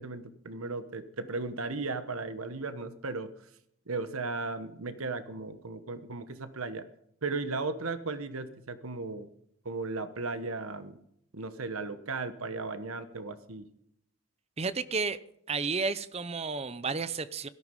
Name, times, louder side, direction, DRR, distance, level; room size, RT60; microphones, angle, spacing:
voice 1, 0.0-3.3 3.9-6.9 7.2-9.3 9.6-11.0 11.3-13.7, right 3 dB, 80° right, 11 dB, 1.2 m, -36 dB
voice 2, 14.6-15.2 15.5-17.5, right 4 dB, 30° right, 15 dB, 0.6 m, -32 dB
17.0 x 13.0 x 5.4 m, 0.72 s
head